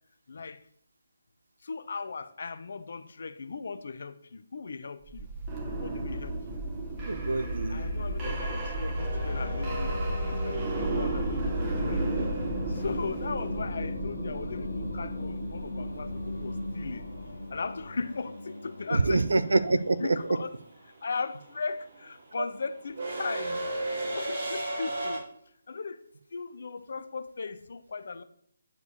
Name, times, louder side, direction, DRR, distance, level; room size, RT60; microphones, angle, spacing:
voice 1, 0.3-0.6 1.6-5.3 5.7-6.6 7.7-10.0 10.2-12.0 12.7-17.1 17.5-19.6 20.0-20.5 21.0-23.7 24.0-25.3 25.7-26.0 26.3-28.2, left 4 dB, 55° left, 0.9 m, -37 dB
sound 1, 5.1-17.9, right 1 dB, 25° right, 2.2 m, -33 dB
voice 2, 7.1-8.4 18.9-20.2, right 3 dB, 70° right, 0.9 m, -26 dB
Singing, 8.9-20.1, left 2 dB, 75° left, 1.2 m, -40 dB
sound 2, 9.0-13.0 15.4-15.5 16.8-17.1 17.4-25.2, right 2 dB, 45° right, 4.5 m, -36 dB
10.5 x 4.7 x 6.9 m
figure-of-eight pair, 145°, 0 cm